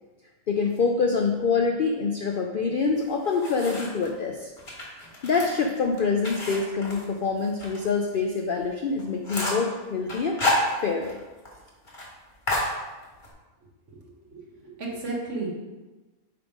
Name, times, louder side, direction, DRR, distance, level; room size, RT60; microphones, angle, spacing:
voice 1, 0.5-4.5 5.2-11.2, left 4 dB, 65° left, 2 dB, 0.5 m, -26 dB
sound 1, 3.0-4.1 4.6-7.8 8.1-8.2 8.6-8.7 9.0-9.7 10.1-11.2 11.5-11.6 11.9-12.1 12.5-13.3, left 2 dB, 35° left, 1.7 m, -30 dB
voice 2, 13.9-15.5, right 3 dB, 60° right, -2 dB, 1.7 m, -34 dB
7.6 x 3.5 x 5.0 m, 1.2 s
omnidirectional pair, 1.5 m